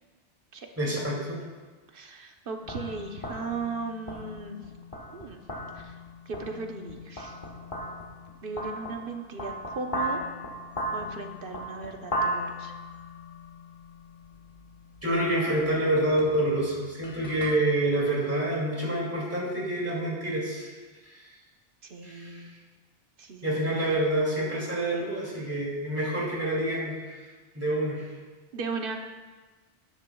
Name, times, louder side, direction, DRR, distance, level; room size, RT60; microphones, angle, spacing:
voice 1, 0.8-1.4 15.0-20.7 21.0-21.3 22.0-22.5 23.4-27.2 27.5-28.1, right 1 dB, 10° right, -4 dB, 2.4 m, -27 dB
voice 2, 1.9-4.6 5.1-5.4 5.7-5.9 6.3-7.4 8.4-10.2 10.9-12.7 21.8-22.5 23.2-23.8 28.5-29.0, right 4 dB, 55° right, 4 dB, 1.0 m, -37 dB
sound 1, 2.6-17.5, equal, 30° left, 1.5 m, -37 dB
12.5 x 10.0 x 2.3 m, 1.3 s
omnidirectional pair, 1.2 m